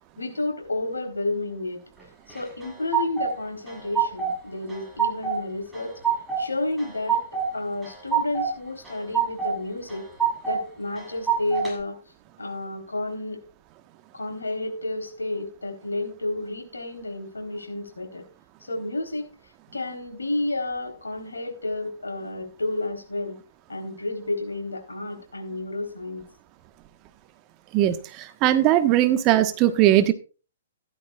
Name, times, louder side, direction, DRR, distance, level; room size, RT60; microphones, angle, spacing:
voice 1, 0.2-1.8 2.3-5.9 6.4-7.2 7.5-10.1 10.5-12.0 12.4-13.4 14.1-18.2 18.7-19.3 19.7-23.4 23.7-26.2, left 2 dB, 85° left, 4 dB, 3.9 m, -31 dB
sound 1, 2.3-3.3 3.7-4.4 4.7-5.4 5.7-6.4 6.8-7.5 7.8-8.5 8.8-9.5 9.9-10.6 11.0-11.7, right 8 dB, 5° right, 7.2 m, -25 dB
voice 2, 27.7-30.1, right 13 dB, 30° right, 9 dB, 1.3 m, -19 dB
15.0 x 12.0 x 2.4 m, 0.34 s
figure-of-eight pair, 120°, 0 cm